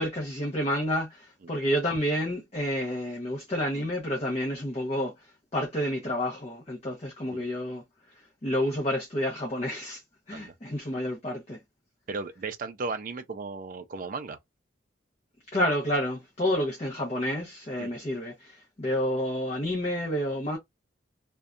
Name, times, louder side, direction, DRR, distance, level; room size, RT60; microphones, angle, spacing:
voice 1, 0.0-5.1 5.5-7.8 8.4-10.0 10.3-11.6 15.5-20.6, equal, 30° left, 0.6 m, -29 dB
voice 2, 12.1-14.4 17.8-17.9, right 4 dB, 45° right, 0.4 m, -35 dB
2.6 x 2.2 x 2.4 m
head